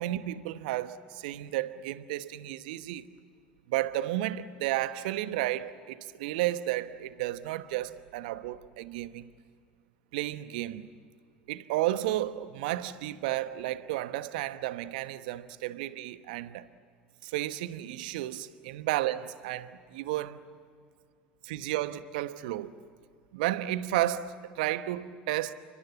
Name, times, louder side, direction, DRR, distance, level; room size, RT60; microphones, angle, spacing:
voice 1, 0.0-3.1 3.7-9.3 10.1-10.9 11.5-16.7 17.2-20.4 21.4-22.7 23.3-25.5, right 14 dB, 70° right, 1.1 m, -32 dB
29.5 x 24.5 x 8.3 m
hypercardioid pair, 75°, 5 cm